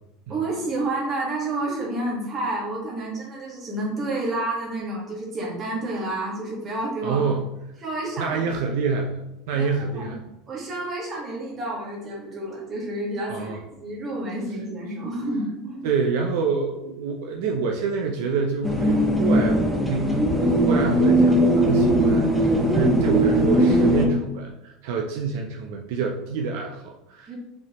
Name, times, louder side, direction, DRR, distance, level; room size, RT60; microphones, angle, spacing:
voice 1, 0.3-7.2 7.8-8.4 9.5-10.1 10.5-15.9 27.3-27.4, right 2 dB, 20° right, -5 dB, 1.5 m, -30 dB
voice 2, 7.0-7.4 8.2-9.2 9.5-10.2 13.3-13.6 15.8-19.6 19.9-27.3, right 5 dB, 65° right, 2 dB, 0.5 m, -27 dB
sound 1, 18.6-24.1, right 1 dB, 5° right, 0.5 m, -19 dB
5.0 x 3.4 x 3.0 m, 0.91 s
cardioid pair, 175°, 0 cm